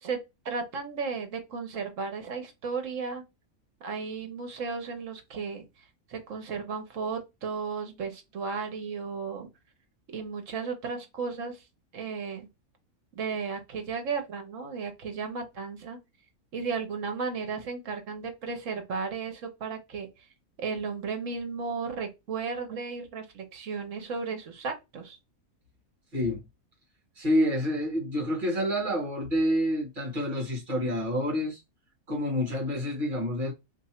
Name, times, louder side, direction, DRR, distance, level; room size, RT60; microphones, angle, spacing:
voice 1, 0.0-3.2 3.8-5.7 6.1-9.5 10.1-11.6 11.9-12.5 13.1-16.0 16.5-20.2 20.6-25.2, right 5 dB, 60° right, 1.3 m, -34 dB
voice 2, 26.1-26.4 27.2-31.6 32.1-33.5, equal, 35° right, 1.3 m, -28 dB
2.9 x 2.7 x 4.2 m
omnidirectional pair, 1.5 m